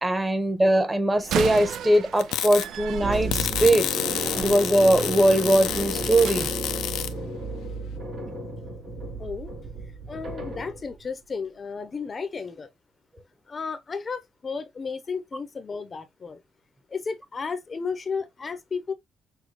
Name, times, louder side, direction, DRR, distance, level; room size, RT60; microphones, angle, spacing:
voice 1, 0.0-3.9 4.3-6.5, right 1 dB, 15° right, 1.0 m, -21 dB
Slam, 1.2-6.5, right 10 dB, 75° right, 0.4 m, -35 dB
sound 1, 2.2-2.7 3.3-7.1, left 12 dB, 90° left, 0.6 m, -29 dB
sound 2, 3.0-11.1, right 1 dB, 50° right, 3.6 m, -33 dB
voice 2, 9.2-9.5 10.1-12.7 13.5-16.4 16.9-18.9, left 5 dB, 35° left, 0.7 m, -33 dB
6.3 x 2.2 x 3.1 m
cardioid pair, 90°, 0 cm